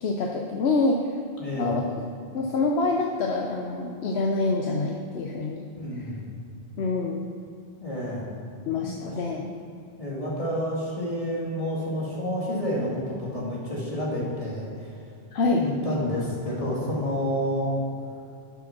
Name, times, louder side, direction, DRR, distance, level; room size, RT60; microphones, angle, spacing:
voice 1, 0.0-1.1 1.6-2.1 2.3-5.7 6.0-6.1 6.8-7.2 8.7-9.5 15.3-15.6, left 3 dB, 80° left, 0 dB, 1.0 m, -26 dB
voice 2, 1.4-1.8 5.8-6.2 7.8-8.3 8.8-9.1 10.0-14.9 15.5-17.7, equal, 35° left, -6 dB, 2.5 m, -29 dB
8.7 x 7.0 x 6.0 m, 2.7 s
omnidirectional pair, 1.1 m